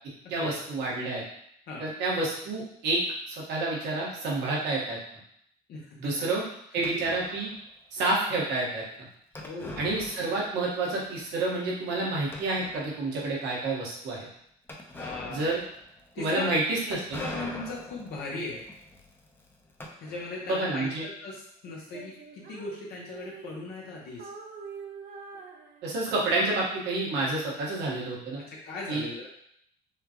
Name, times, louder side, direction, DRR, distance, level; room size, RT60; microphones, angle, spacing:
voice 1, 0.3-1.2 1.8-3.0 3.3-5.0 6.0-6.4 6.7-7.5 7.9-8.8 9.8-14.3 15.3-15.6 16.2-17.2 20.5-21.0 25.8-28.4 28.9-29.0, right 2 dB, 85° right, -4 dB, 1.4 m, -29 dB
voice 2, 5.7-6.3 6.7-7.0 9.4-9.9 15.0-15.5 16.1-16.5 17.2-18.6 20.0-24.3 28.6-29.3, left 3 dB, 65° left, -3 dB, 0.9 m, -38 dB
sound 1, 6.8-7.6 9.3-10.7 11.0-11.1 11.7-11.8 12.3-13.2 14.7-20.6, left 1 dB, 15° left, 0.6 m, -43 dB
Female singing, 21.6-23.9 24.2-26.3, right 5 dB, 60° right, 0.6 m, -45 dB
5.6 x 2.3 x 2.9 m, 0.69 s
cardioid pair, 110°, 17 cm